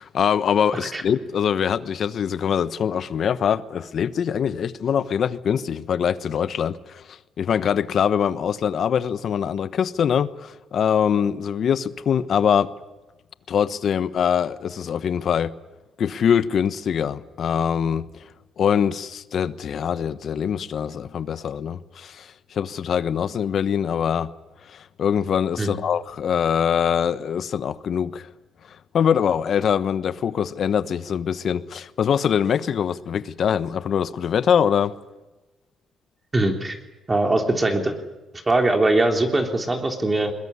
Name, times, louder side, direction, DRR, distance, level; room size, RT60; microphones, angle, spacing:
voice 1, 0.0-12.7 13.5-15.5 16.0-18.1 18.6-24.3 24.7-28.3 28.9-34.9, left 8 dB, 60° left, 1.1 m, -23 dB
voice 2, 36.3-36.8 37.1-37.9 38.5-40.3, right 2 dB, 25° right, 3.4 m, -21 dB
22.0 x 21.0 x 9.8 m
cardioid pair, 90°, 0 cm